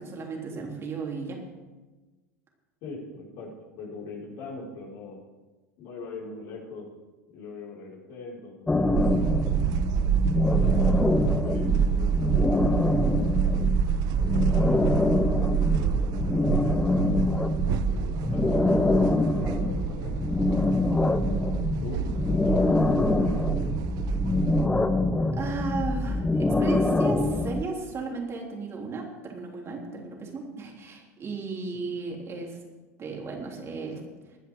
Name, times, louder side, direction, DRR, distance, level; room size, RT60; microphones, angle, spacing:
voice 1, 0.0-1.4 21.0-21.6 25.4-32.6 33.0-34.0, right 4 dB, 30° right, 0 dB, 3.5 m, -35 dB
voice 2, 2.8-3.5 3.8-5.2 5.8-6.9 7.3-9.6 10.5-12.9 14.2-17.0 17.7-20.2 21.3-21.5 21.8-24.0 31.7-31.8, left 3 dB, 55° left, -4 dB, 5.6 m, -41 dB
sound 1, 8.7-27.6, left 2 dB, 10° left, 0.8 m, -25 dB
sound 2, 8.9-24.7, right 10 dB, 50° right, 0.6 m, -28 dB
21.0 x 10.0 x 3.8 m, 1.2 s
hypercardioid pair, 85°, 9 cm